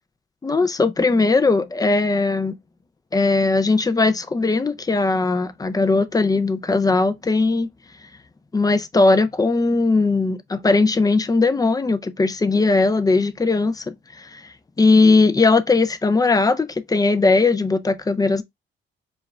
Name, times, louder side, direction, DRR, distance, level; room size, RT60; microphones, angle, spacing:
voice 1, 0.4-2.6 3.1-7.7 8.5-14.4 14.8-18.4, left 3 dB, 20° left, 0.5 m, -19 dB
4.6 x 2.4 x 3.2 m
cardioid pair, 90°, 20 cm